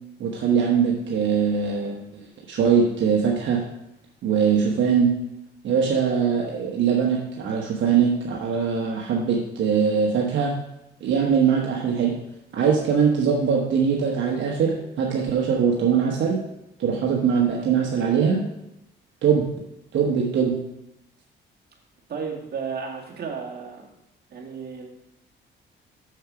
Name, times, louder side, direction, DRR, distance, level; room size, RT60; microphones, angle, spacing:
voice 1, 0.2-3.6 4.2-5.1 5.6-10.5 11.0-12.1 12.5-16.4 16.8-18.4 19.2-19.5 19.9-20.6, right 6 dB, 70° right, -1 dB, 1.2 m, -22 dB
voice 2, 22.1-23.8 24.3-24.9, right 6 dB, 55° right, -2 dB, 2.2 m, -33 dB
6.9 x 6.4 x 5.0 m, 0.86 s
cardioid pair, 90°, 20 cm